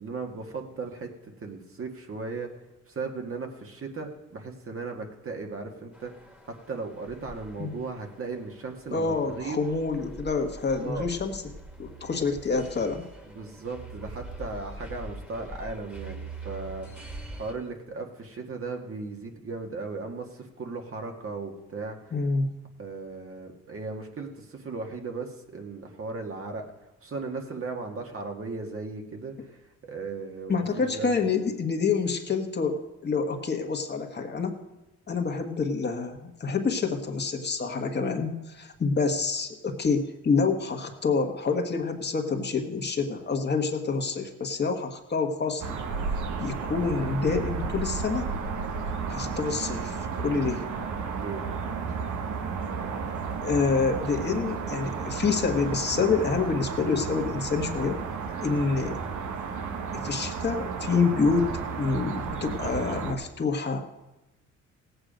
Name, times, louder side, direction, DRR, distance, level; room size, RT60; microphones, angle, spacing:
voice 1, 0.0-2.5 2.9-6.1 6.7-9.7 10.8-11.1 13.3-16.9 17.4-22.1 22.8-26.7 27.0-31.1 51.1-51.5, right 4 dB, 45° right, 3 dB, 1.8 m, -37 dB
sound 1, 5.9-17.5, right 2 dB, 5° right, 1.9 m, -44 dB
voice 2, 8.9-11.4 11.8-13.0 22.1-22.5 30.5-34.6 35.1-45.8 46.4-48.3 49.1-50.7 53.4-58.0 58.4-59.0 59.9-61.5 61.8-63.8, left 4 dB, 35° left, 4 dB, 1.5 m, -27 dB
sound 2, 45.6-63.1, right 5 dB, 75° right, 1.4 m, -33 dB
17.0 x 8.1 x 5.1 m, 0.98 s
cardioid pair, 90°, 30 cm